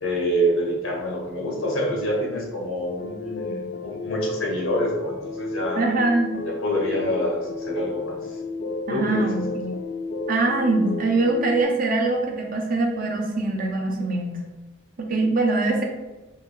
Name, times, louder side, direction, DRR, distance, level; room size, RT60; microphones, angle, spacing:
voice 1, 0.0-5.8 6.4-8.2 8.9-9.3, equal, 80° left, -2 dB, 1.3 m, -26 dB
sound 1, 2.8-11.6, left 3 dB, 50° left, 0.4 m, -32 dB
voice 2, 5.8-6.3 8.9-9.8 10.3-14.4 15.0-15.8, right 2 dB, 45° right, 0 dB, 0.8 m, -23 dB
4.1 x 3.2 x 3.9 m, 1.1 s
head